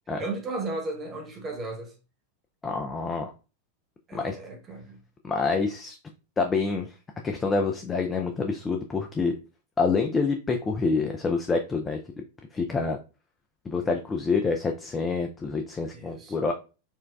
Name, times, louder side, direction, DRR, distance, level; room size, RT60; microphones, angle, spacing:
voice 1, 0.2-1.9 4.1-5.0 15.9-16.4, right 2 dB, 25° right, 1.0 m, -35 dB
voice 2, 2.6-3.3 4.1-4.4 5.2-6.0 6.4-7.0 7.2-9.3 9.8-12.0 12.5-13.0 13.7-16.5, left 4 dB, 20° left, 0.4 m, -27 dB
4.4 x 2.2 x 2.3 m
figure-of-eight pair, 90°, 0 cm